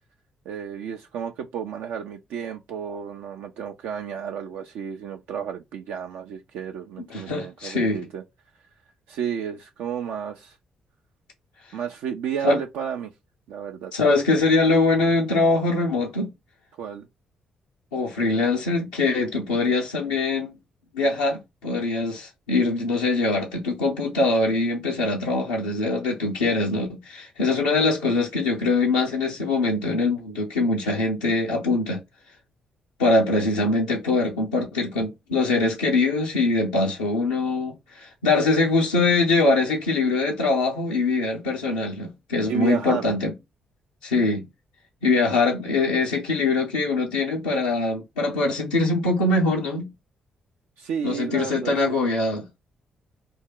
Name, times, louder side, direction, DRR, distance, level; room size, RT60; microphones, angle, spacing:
voice 1, 0.5-8.2 9.1-10.6 11.7-13.1 13.5-13.9 16.8-17.1 42.4-43.1 50.8-52.0, right 8 dB, 70° right, 0.4 m, -32 dB
voice 2, 7.1-8.0 12.4-12.6 13.9-16.3 17.9-20.5 20.9-32.0 33.0-43.3 44.0-44.5 45.0-49.9 51.0-52.4, left 3 dB, 85° left, 0.5 m, -23 dB
3.4 x 2.2 x 3.6 m
hypercardioid pair, 40°, 3 cm